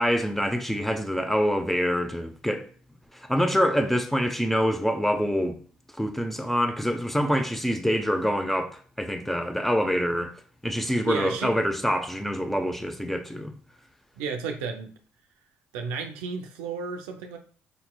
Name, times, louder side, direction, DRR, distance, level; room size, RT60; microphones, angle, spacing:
voice 1, 0.0-2.7 3.1-5.6 6.0-10.3 10.6-13.5, equal, 5° left, 0.6 m, -25 dB
voice 2, 11.0-11.5 14.2-14.9 15.7-17.4, right 5 dB, 90° right, 0.4 m, -32 dB
5.1 x 2.9 x 2.2 m
supercardioid pair, 65°, 6 cm